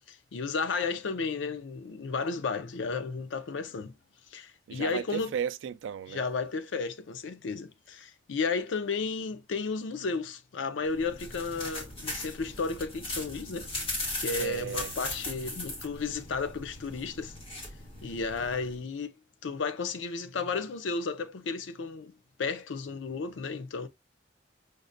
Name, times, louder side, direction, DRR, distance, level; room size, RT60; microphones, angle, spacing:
voice 1, 0.1-3.9 4.3-5.3 6.1-13.7 14.2-17.3 18.0-19.1 19.4-23.9, left 4 dB, 80° left, 0.5 m, -33 dB
voice 2, 4.7-6.3 14.4-14.9, right 8 dB, 85° right, 0.3 m, -35 dB
sound 1, 10.8-18.7, left 1 dB, 30° left, 1.1 m, -38 dB
5.0 x 2.1 x 2.5 m
head